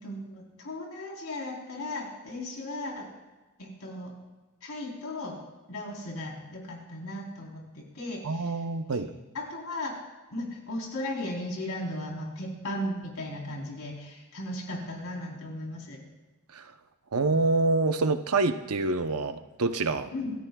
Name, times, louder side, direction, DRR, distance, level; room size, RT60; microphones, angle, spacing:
voice 1, 0.0-3.1 3.6-4.1 4.6-5.4 5.7-8.5 8.9-9.0 9.3-10.0 10.3-16.0 20.1-20.3, left 1 dB, 70° left, -1 dB, 3.8 m, -36 dB
voice 2, 8.2-9.1 16.5-16.7 17.1-20.1, right 3 dB, 80° right, 8 dB, 0.8 m, -26 dB
26.5 x 13.5 x 2.3 m, 1.2 s
head